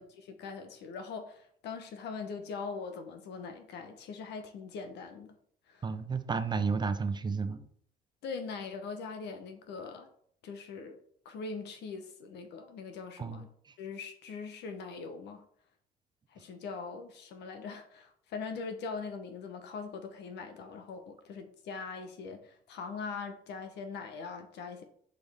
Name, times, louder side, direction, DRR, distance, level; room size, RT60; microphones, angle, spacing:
voice 1, 0.0-5.3 5.7-5.8 8.2-10.1 10.4-11.0 11.2-13.5 13.8-15.4 16.3-24.8, left 5 dB, 75° left, 7 dB, 0.9 m, -41 dB
voice 2, 5.8-7.7 13.2-13.7, right 5 dB, 25° right, 11 dB, 0.5 m, -32 dB
6.2 x 5.2 x 3.4 m, 0.63 s
cardioid pair, 110°, 18 cm